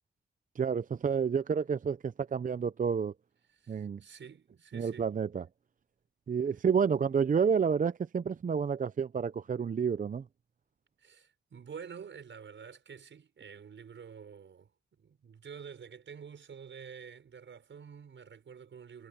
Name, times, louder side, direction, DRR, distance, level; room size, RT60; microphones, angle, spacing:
voice 1, 0.6-3.1 3.7-4.0 4.7-5.5 6.3-10.2, right 6 dB, 45° right, 0.5 m, -29 dB
voice 2, 3.5-5.1 11.0-19.1, right 7 dB, 80° right, 6.2 m, -49 dB
cardioid pair, 70°, 19 cm